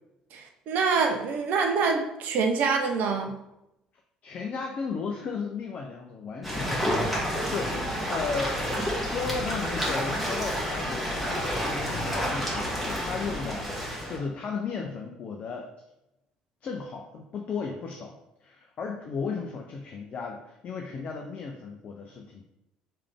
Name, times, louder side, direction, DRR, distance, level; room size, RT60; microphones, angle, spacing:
voice 1, 0.3-3.3, right 5 dB, 50° right, 3 dB, 0.5 m, -26 dB
voice 2, 4.2-8.6 9.0-15.7 16.6-22.5, left 5 dB, 40° left, 1 dB, 0.5 m, -35 dB
sound 1, 6.4-14.2, equal, ahead, 1.4 m, -29 dB
3.3 x 3.3 x 3.5 m, 0.88 s
figure-of-eight pair, 55°, 4 cm